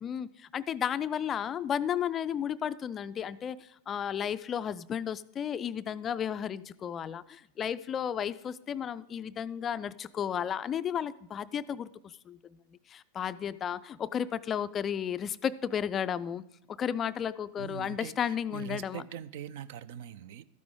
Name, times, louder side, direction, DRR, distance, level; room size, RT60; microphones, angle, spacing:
voice 1, 0.0-11.9 12.3-12.4 12.9-19.0, left 8 dB, 25° left, 0.3 m, -33 dB
voice 2, 17.6-20.4, right 9 dB, 50° right, 0.4 m, -42 dB
12.5 x 9.5 x 3.7 m
figure-of-eight pair, 90°, 0 cm